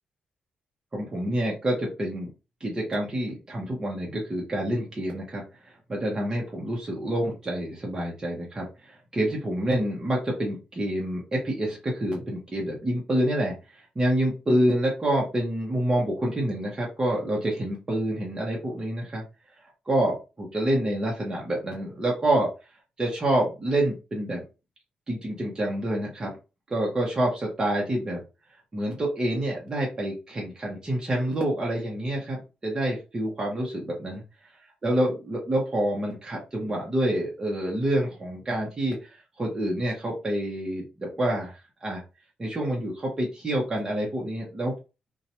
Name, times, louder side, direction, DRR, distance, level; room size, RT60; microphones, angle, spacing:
voice 1, 0.9-2.3 2.6-13.5 13.9-19.2 19.9-22.5 23.0-24.4 25.1-26.3 26.7-28.2 28.7-34.2 34.8-39.1 39.4-41.5 41.8-42.0 42.4-44.7, right 1 dB, 25° right, -3 dB, 0.9 m, -27 dB
2.8 x 2.2 x 2.8 m, 0.30 s
wide cardioid pair, 135°, 3 cm